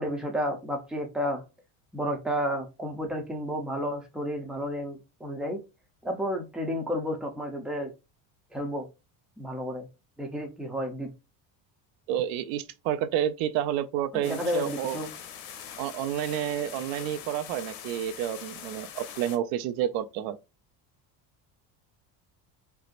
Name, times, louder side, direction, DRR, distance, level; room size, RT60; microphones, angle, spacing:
voice 1, 0.0-1.4 1.9-5.6 6.0-7.9 8.5-8.9 9.4-9.9 10.2-11.1 14.1-15.1, equal, ahead, 0.7 m, -31 dB
voice 2, 12.1-15.0 15.8-20.4, right 11 dB, 85° right, 0.6 m, -30 dB
sound 1, 14.2-19.4, left 9 dB, 85° left, 0.8 m, -43 dB
4.4 x 2.0 x 2.5 m
supercardioid pair, 110°, 46 cm